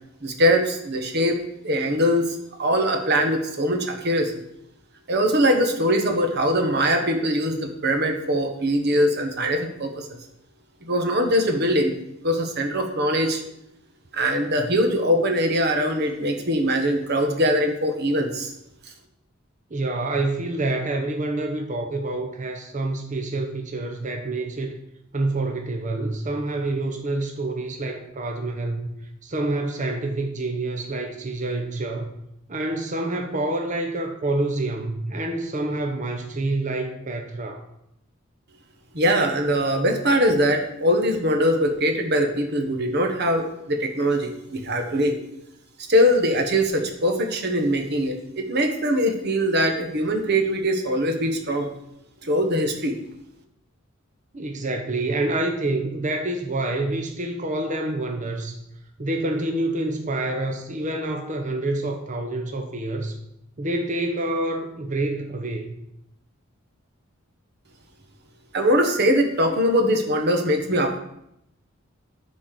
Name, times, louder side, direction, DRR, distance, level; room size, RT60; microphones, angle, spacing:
voice 1, 0.2-1.4 1.6-4.3 5.1-10.1 10.8-11.9 12.2-13.4 14.1-18.5 38.9-45.1 45.9-51.7 52.2-53.0 68.5-71.0, equal, 55° right, 4 dB, 1.3 m, -22 dB
voice 2, 19.7-24.7 25.1-28.9 29.2-32.1 32.5-37.6 54.3-58.6 59.0-63.2 63.6-65.8, right 2 dB, 35° right, 4 dB, 0.9 m, -27 dB
9.6 x 4.3 x 6.6 m, 0.79 s
head